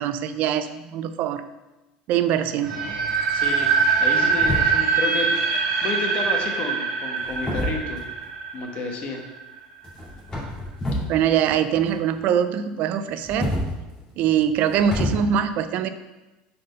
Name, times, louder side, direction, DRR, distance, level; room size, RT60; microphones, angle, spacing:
voice 1, 0.0-1.4 2.1-2.8 11.1-13.5 14.2-15.9, right 9 dB, 55° right, 11 dB, 0.5 m, -23 dB
sound 1, 2.6-9.5, right 5 dB, 75° right, 1.4 m, -23 dB
voice 2, 3.3-3.7 4.0-5.3 5.8-8.0 8.5-9.2, left 3 dB, 45° left, 2 dB, 1.2 m, -30 dB
sound 2, 4.3-5.0 6.1-6.5 7.2-8.3 9.8-11.1 11.4-12.3 13.1-15.1, left 1 dB, 20° left, 2.3 m, -29 dB
5.0 x 4.3 x 5.4 m, 1.1 s
supercardioid pair, 125°, 3 cm